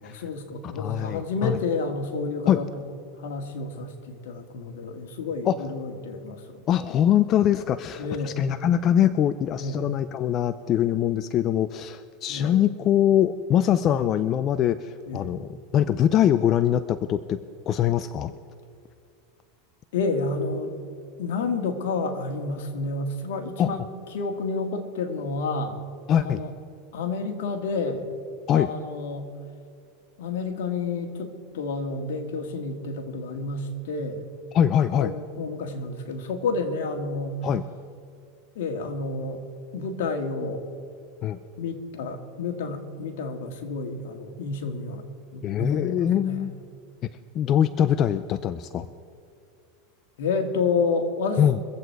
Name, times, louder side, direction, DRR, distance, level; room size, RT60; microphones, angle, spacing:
voice 1, 0.0-2.7 3.2-6.7 8.0-8.5 9.6-9.9 12.3-12.6 15.1-15.3 19.9-20.7 21.2-23.8 24.1-25.8 26.2-26.5 26.9-28.1 28.5-29.3 30.2-34.3 35.0-37.5 38.6-39.4 39.7-40.6 41.6-45.0 45.3-46.4 50.2-51.4, left 3 dB, 75° left, 5 dB, 1.9 m, -30 dB
voice 2, 0.6-1.6 2.5-2.6 5.5-5.6 6.7-18.3 23.6-23.7 26.1-26.4 28.5-28.7 34.5-35.1 37.4-37.6 41.2-41.4 45.4-46.5 47.3-48.9 51.4-51.6, left 10 dB, 40° left, 13 dB, 0.4 m, -23 dB
23.5 x 8.1 x 4.7 m, 2.4 s
supercardioid pair, 120°, 0 cm